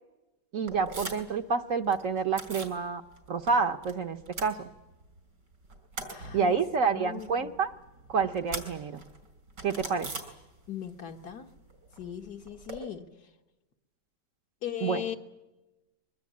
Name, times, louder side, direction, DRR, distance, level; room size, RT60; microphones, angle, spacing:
voice 1, 0.5-3.0 3.3-4.6 6.3-7.7 8.1-9.0 9.6-10.1 14.8-15.0, right 5 dB, 55° right, 7 dB, 1.3 m, -28 dB
sound 1, 0.7-1.4 1.7-2.8 3.1-3.9 4.2-5.2 5.5-10.9 11.1-12.8, right 3 dB, 85° right, 4.5 m, -42 dB
voice 2, 6.1-7.5 10.7-11.5 12.0-13.3 14.6-15.2, left 10 dB, 65° left, 5 dB, 2.1 m, -39 dB
23.0 x 23.0 x 8.6 m, 1.0 s
omnidirectional pair, 1.8 m